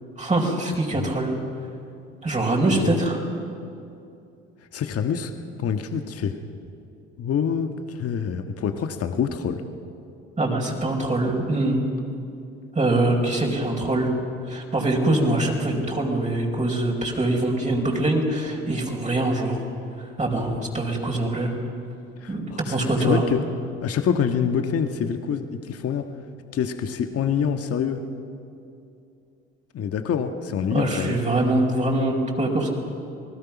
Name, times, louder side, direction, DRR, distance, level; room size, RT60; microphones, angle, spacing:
voice 1, 0.2-1.3 2.2-3.2 10.4-11.8 12.7-14.1 14.5-19.6 20.2-21.5 22.3-23.2 30.7-32.7, right 2 dB, 25° right, -1 dB, 4.8 m, -23 dB
voice 2, 4.7-5.3 5.6-6.3 7.2-9.6 22.2-23.4 23.8-26.0 26.5-28.0 29.7-31.1, left 7 dB, 50° left, 7 dB, 1.5 m, -26 dB
29.0 x 19.0 x 6.1 m, 2.6 s
hypercardioid pair, 65°, 30 cm